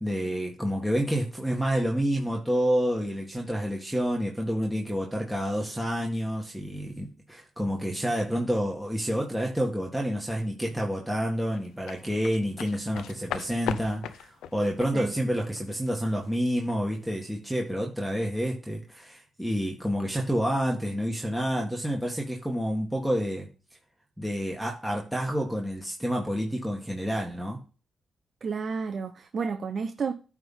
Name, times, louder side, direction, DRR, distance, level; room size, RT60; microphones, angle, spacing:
voice 1, 0.0-23.5 24.2-27.6, equal, 5° right, 1.8 m, -29 dB
sound 1, 11.5-16.8 17.1-17.3, left 9 dB, 90° left, 0.6 m, -38 dB
voice 2, 28.4-30.1, right 5 dB, 55° right, 0.7 m, -31 dB
9.1 x 3.6 x 5.6 m
cardioid pair, 70°, 0 cm